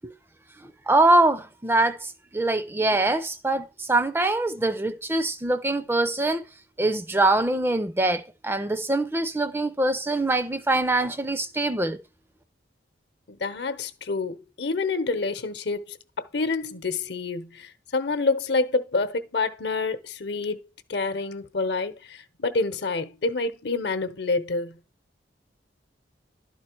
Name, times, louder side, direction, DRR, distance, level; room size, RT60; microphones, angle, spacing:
voice 1, 0.6-6.5 6.8-12.0, right 2 dB, 10° right, 0.4 m, -23 dB
voice 2, 13.3-20.6 20.9-24.8, left 3 dB, 65° left, 0.9 m, -28 dB
11.5 x 4.3 x 4.5 m
head